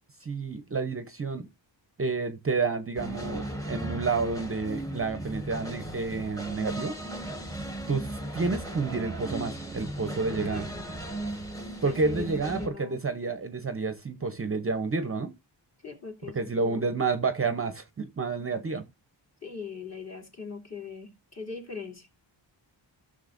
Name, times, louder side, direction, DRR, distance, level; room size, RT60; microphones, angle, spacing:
voice 1, 0.2-1.5 2.0-7.0 7.9-10.7 11.8-15.3 16.4-18.8, right 4 dB, 30° right, 0.7 m, -30 dB
sound 1, 3.0-12.7, right 1 dB, 5° left, 1.2 m, -36 dB
voice 2, 10.3-10.8 11.8-13.0 15.8-16.9 19.4-22.2, left 5 dB, 35° left, 2.7 m, -41 dB
15.0 x 6.5 x 2.5 m
wide cardioid pair, 175°, 46 cm